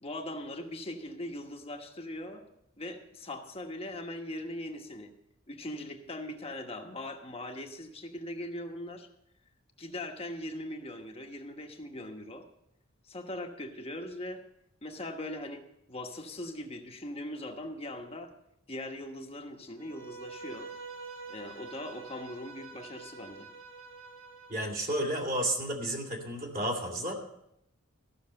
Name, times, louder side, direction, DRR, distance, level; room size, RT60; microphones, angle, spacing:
voice 1, 0.0-2.5 2.8-5.1 5.5-9.1 9.8-12.5 13.1-14.4 14.8-18.3 18.7-20.7 21.3-23.5, left 1 dB, 30° left, 3 dB, 1.3 m, -40 dB
Bowed string instrument, 19.8-24.8, right 4 dB, 70° right, 1.3 m, -46 dB
voice 2, 24.5-27.1, right 1 dB, 40° right, 0 dB, 2.6 m, -32 dB
14.5 x 6.5 x 7.6 m, 0.78 s
head